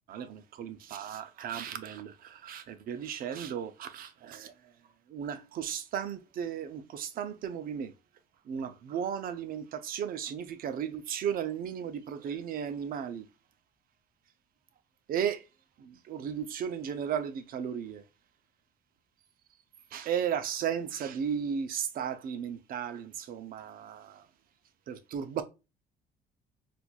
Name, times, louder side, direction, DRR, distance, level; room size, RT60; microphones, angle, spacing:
voice 1, 0.1-4.7 5.1-7.9 8.4-13.3 15.1-15.4 15.8-18.0 19.9-24.3 24.9-25.4, right 8 dB, 60° right, 0.6 m, -35 dB
4.2 x 2.6 x 2.3 m
cardioid pair, 110°, 17 cm